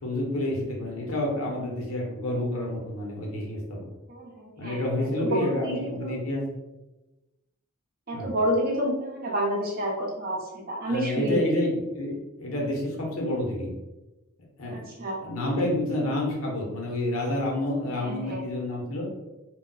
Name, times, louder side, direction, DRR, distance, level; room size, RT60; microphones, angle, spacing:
voice 1, 0.0-3.8 4.6-6.4 8.1-8.3 10.9-13.7 14.6-14.8 15.2-19.1, left 1 dB, 80° left, -2 dB, 0.9 m, -29 dB
voice 2, 4.1-6.1 8.1-11.5 14.7-15.2 17.9-18.4, right 1 dB, 45° right, -2 dB, 0.6 m, -30 dB
2.2 x 2.2 x 3.9 m, 1.0 s
head